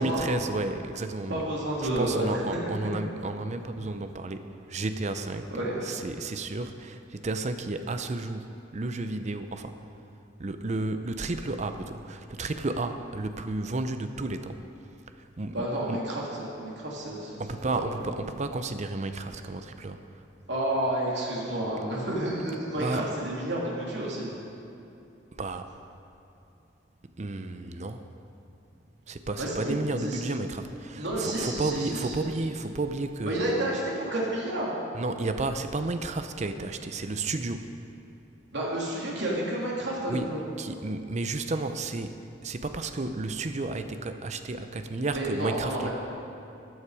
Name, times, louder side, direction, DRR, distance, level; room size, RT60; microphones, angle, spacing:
voice 1, 0.0-1.5 1.8-9.9 10.4-14.7 15.1-16.1 17.4-20.2 22.6-23.2 25.3-25.7 27.2-28.1 29.1-33.4 34.9-37.8 40.1-45.9, right 2 dB, 40° right, 8 dB, 0.7 m, -32 dB
voice 2, 1.3-2.4 2.8-2.9 5.5-6.1 15.5-17.4 17.7-17.9 20.5-24.3 29.4-30.2 30.9-32.3 33.3-34.7 38.5-40.4 45.1-45.9, right 1 dB, 75° right, -4 dB, 2.9 m, -30 dB
14.0 x 9.7 x 4.9 m, 2.8 s
head